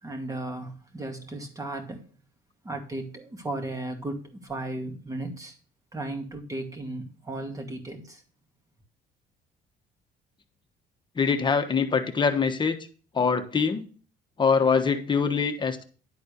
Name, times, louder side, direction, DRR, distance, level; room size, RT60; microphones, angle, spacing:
voice 1, 0.0-2.0 2.6-5.6 5.9-8.2, right 2 dB, 20° right, 2.3 m, -35 dB
voice 2, 11.2-12.8 13.1-13.9 14.4-15.8, left 5 dB, 25° left, 1.2 m, -24 dB
11.0 x 4.3 x 6.8 m
cardioid pair, 110°, 17 cm